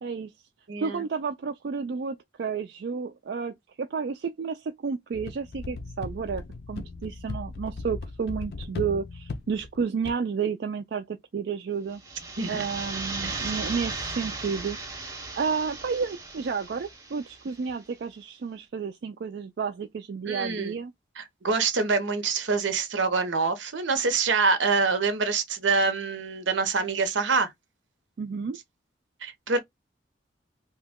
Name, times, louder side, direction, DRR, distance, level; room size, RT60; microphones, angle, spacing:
voice 1, 0.0-0.3 0.8-6.4 6.7-12.0 12.5-14.8 15.4-20.9 28.2-28.6, right 5 dB, 65° right, 0.3 m, -31 dB
voice 2, 0.7-1.0 12.4-12.7 13.2-13.5 20.3-20.8 21.2-27.5 29.2-29.6, right 4 dB, 90° right, 0.8 m, -26 dB
sound 1, 5.1-10.1, left 3 dB, 60° left, 0.4 m, -37 dB
sound 2, 11.9-17.6, right 3 dB, 15° right, 0.6 m, -36 dB
2.9 x 2.2 x 3.5 m
head